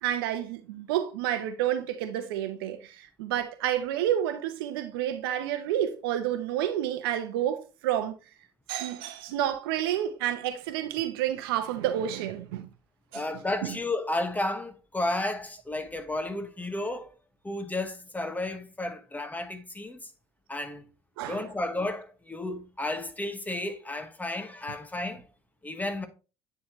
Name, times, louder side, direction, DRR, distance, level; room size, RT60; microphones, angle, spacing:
voice 1, 0.0-8.1 8.7-12.7 13.1-13.2 13.6-13.8 21.2-21.4, right 11 dB, 75° right, 0.8 m, -29 dB
voice 2, 13.1-17.1 17.4-20.1 20.5-20.8 21.3-25.3 25.6-26.1, left 2 dB, 15° left, 1.2 m, -32 dB
9.4 x 3.9 x 3.0 m
hypercardioid pair, 60°, 12 cm